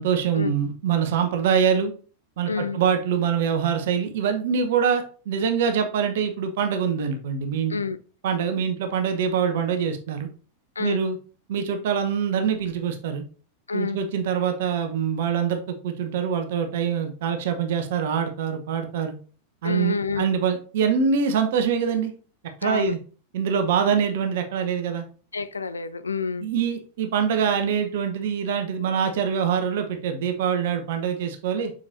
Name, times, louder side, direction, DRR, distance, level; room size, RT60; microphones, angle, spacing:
voice 1, 0.0-1.9 2.4-7.7 8.2-10.3 10.8-11.2 11.5-13.2 13.7-19.1 19.6-22.1 22.6-23.0 23.3-25.0 26.4-31.7, right 7 dB, 55° right, 1.0 m, -24 dB
voice 2, 2.5-2.8 7.7-8.0 10.8-11.0 13.7-14.0 19.6-20.3 22.6-23.0 25.3-26.5, left 4 dB, 75° left, 0.5 m, -28 dB
7.0 x 6.5 x 2.6 m
figure-of-eight pair, 90°, 0 cm